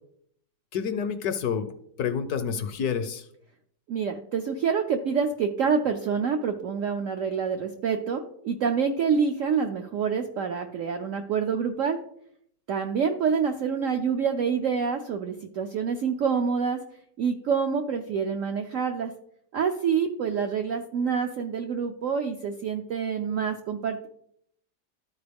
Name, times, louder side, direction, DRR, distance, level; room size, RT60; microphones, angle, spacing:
voice 1, 0.7-1.7 2.0-3.3, left 7 dB, 70° left, 9 dB, 1.0 m, -28 dB
voice 2, 3.9-12.0 12.7-16.8 17.2-19.1 19.5-24.1, right 6 dB, 75° right, 5 dB, 0.7 m, -27 dB
12.5 x 4.6 x 3.4 m, 0.70 s
omnidirectional pair, 2.0 m